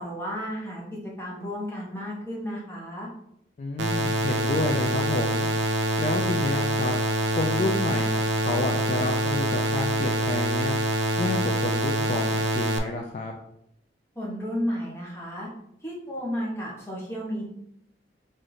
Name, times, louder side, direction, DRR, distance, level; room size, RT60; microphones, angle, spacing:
voice 1, 0.0-3.1 14.1-15.5 15.8-17.4, equal, 15° left, -4 dB, 0.9 m, -33 dB
voice 2, 3.6-5.5 6.0-6.9 7.3-10.8 11.2-13.3, left 2 dB, 45° left, 1 dB, 0.3 m, -30 dB
sound 1, 3.8-12.8, right 1 dB, 90° right, 0.4 m, -25 dB
3.1 x 2.6 x 3.9 m, 0.75 s
head